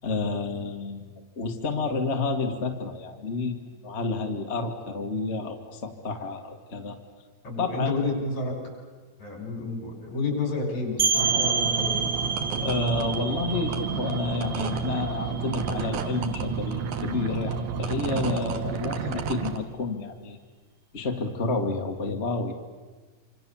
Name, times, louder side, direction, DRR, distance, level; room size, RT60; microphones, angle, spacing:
voice 1, 0.0-3.5 3.8-7.0 7.6-8.0 12.6-20.4 20.9-22.5, left 3 dB, 25° left, 3 dB, 1.7 m, -30 dB
voice 2, 7.4-8.6 9.2-12.1, left 3 dB, 65° left, 1 dB, 7.7 m, -30 dB
sound 1, 11.0-16.5, right 5 dB, 40° right, 1.7 m, -29 dB
sound 2, 11.1-19.6, right 5 dB, 85° right, 2.9 m, -30 dB
26.5 x 26.5 x 7.2 m, 1.3 s
omnidirectional pair, 3.5 m